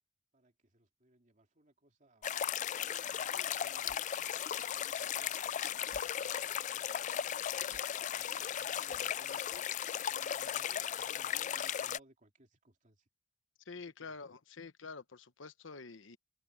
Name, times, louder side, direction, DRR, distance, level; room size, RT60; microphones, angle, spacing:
voice 1, 0.3-2.3 2.6-4.0 4.6-5.4 5.7-6.8 7.3-7.8 8.1-9.6 10.0-13.1 13.8-14.2, right 1 dB, 40° right, 2.8 m, -64 dB
sound 1, 2.2-12.0, left 9 dB, 40° left, 0.3 m, -36 dB
sound 2, 2.8-9.8, equal, 5° right, 2.0 m, -65 dB
voice 2, 13.7-16.2, left 4 dB, 85° left, 1.0 m, -48 dB
head